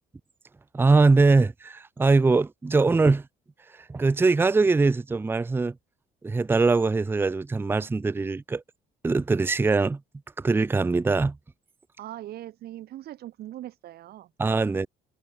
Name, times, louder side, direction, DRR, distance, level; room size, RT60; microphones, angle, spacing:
voice 1, 0.7-3.3 3.7-5.8 6.2-8.6 9.0-10.0 10.4-11.4 14.4-14.9, right 3 dB, 15° right, 0.5 m, -22 dB
voice 2, 12.0-14.3, right 13 dB, 65° right, 2.0 m, -40 dB
cardioid pair, 110°, 17 cm